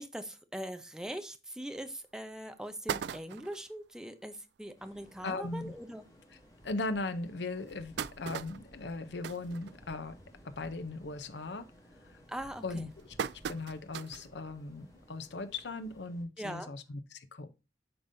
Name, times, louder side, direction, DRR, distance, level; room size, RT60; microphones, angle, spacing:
voice 1, 0.0-6.0 12.3-12.9 16.4-16.7, right 1 dB, 5° right, 0.7 m, -41 dB
sound 1, 1.8-1.9 2.3-2.4 2.6-3.7 4.3-4.4 4.6-4.7 5.1-5.2 6.0-6.1 6.6-6.7 7.4-10.3 10.6-11.0 11.3-11.7 12.3-14.3 14.8-14.9 16.1-16.2, right 7 dB, 75° right, 0.3 m, -40 dB
strong wind in the forest rear, 4.8-16.2, equal, 20° left, 2.2 m, -57 dB
voice 2, 5.2-5.7 6.6-10.2 10.4-11.7 12.0-12.2 12.6-13.2 13.5-17.5, left 3 dB, 80° left, 0.7 m, -38 dB
8.7 x 5.3 x 2.7 m
head